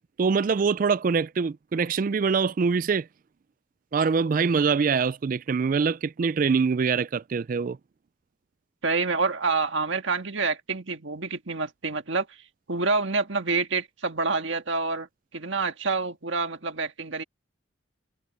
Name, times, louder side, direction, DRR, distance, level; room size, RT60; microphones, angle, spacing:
voice 1, 0.2-3.1 3.9-7.8, right 5 dB, 40° right, 0.3 m, -24 dB
voice 2, 8.8-12.4 12.7-17.2, right 4 dB, 70° right, 1.7 m, -27 dB
head